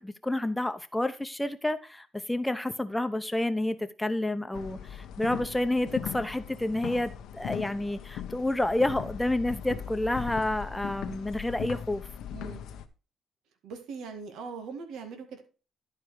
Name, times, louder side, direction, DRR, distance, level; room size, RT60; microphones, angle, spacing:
voice 1, 0.0-12.0, left 1 dB, 10° left, 0.9 m, -29 dB
sound 1, 4.5-12.8, left 9 dB, 85° left, 0.8 m, -39 dB
voice 2, 12.3-12.6 13.6-15.4, right 5 dB, 85° right, 1.7 m, -40 dB
11.0 x 4.7 x 4.7 m
cardioid pair, 90°, 0 cm